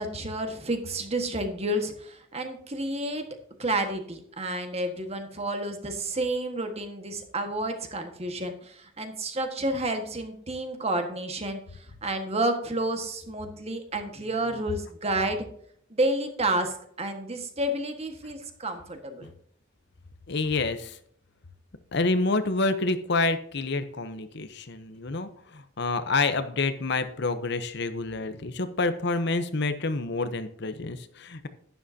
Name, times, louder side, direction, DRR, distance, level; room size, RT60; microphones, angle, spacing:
voice 1, 0.0-3.3 3.6-15.5 15.9-19.3, right 1 dB, 30° right, 6 dB, 1.5 m, -30 dB
voice 2, 20.3-21.0 21.9-31.5, left 3 dB, 60° left, 10 dB, 0.9 m, -28 dB
11.5 x 10.0 x 2.8 m, 0.65 s
head